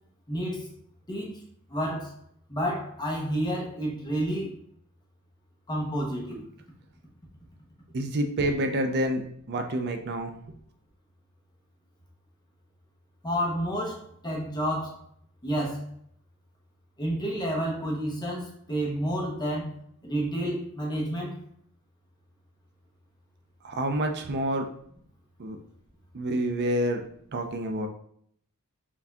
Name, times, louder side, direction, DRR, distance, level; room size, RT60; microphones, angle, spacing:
voice 1, 0.3-0.7 1.1-1.4 1.7-2.1 2.5-4.5 5.7-6.4 13.2-15.0 15.4-15.8 17.0-19.7 20.0-21.3, equal, 20° left, -1 dB, 1.0 m, -30 dB
voice 2, 7.9-9.2 9.5-10.3 23.6-24.7 25.4-25.6 26.1-27.0 27.3-27.9, right 1 dB, 50° right, 5 dB, 0.4 m, -28 dB
4.6 x 2.6 x 3.4 m, 0.66 s
head